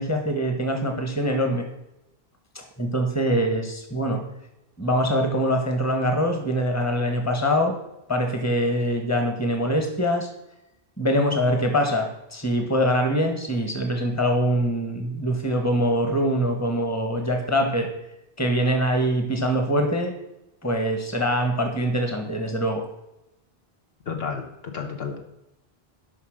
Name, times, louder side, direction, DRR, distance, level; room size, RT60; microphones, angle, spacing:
voice 1, 0.0-1.7 2.5-4.2 4.8-7.8 8.1-10.3 11.0-17.9 18.4-20.1 20.6-22.9, equal, 15° left, 4 dB, 1.4 m, -23 dB
voice 2, 24.1-25.2, left 5 dB, 70° left, 3 dB, 1.5 m, -31 dB
12.5 x 5.7 x 6.5 m, 0.89 s
omnidirectional pair, 1.0 m